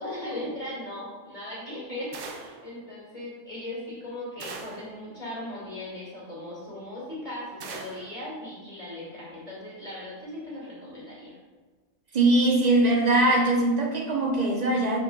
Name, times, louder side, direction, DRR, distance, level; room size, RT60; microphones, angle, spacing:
voice 1, 0.0-11.4, left 1 dB, 35° left, -8 dB, 2.4 m, -38 dB
sound 1, 2.1-2.7 4.4-4.9 7.6-8.1, right 4 dB, 80° right, 1.2 m, -40 dB
voice 2, 12.1-15.0, right 2 dB, 35° right, 1 dB, 0.9 m, -21 dB
10.5 x 5.2 x 2.3 m, 1.4 s
omnidirectional pair, 1.4 m